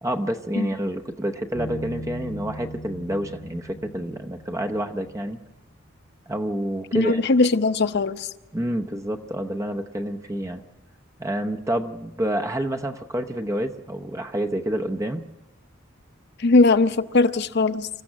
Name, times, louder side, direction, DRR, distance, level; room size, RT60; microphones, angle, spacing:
voice 1, 0.0-5.4 6.3-7.2 8.5-10.6 11.2-15.2, right 1 dB, 15° right, 0.8 m, -28 dB
Bass guitar, 1.5-5.1, equal, 75° left, 3.7 m, -38 dB
voice 2, 6.9-8.3 16.4-17.9, left 3 dB, 55° left, 0.7 m, -19 dB
26.5 x 14.5 x 7.4 m
head